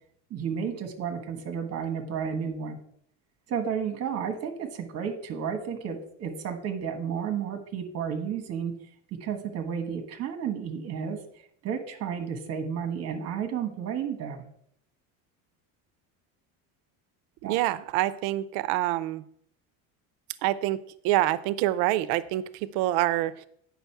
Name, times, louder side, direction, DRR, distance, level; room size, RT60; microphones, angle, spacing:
voice 1, 0.3-2.8 3.5-8.7 9.1-11.2 11.6-14.4 17.4-17.6, right 7 dB, 40° right, 7 dB, 1.4 m, -32 dB
voice 2, 17.5-19.2 20.4-23.5, right 15 dB, 90° right, 16 dB, 0.5 m, -26 dB
9.3 x 6.1 x 4.6 m, 0.67 s
cardioid pair, 160°, 36 cm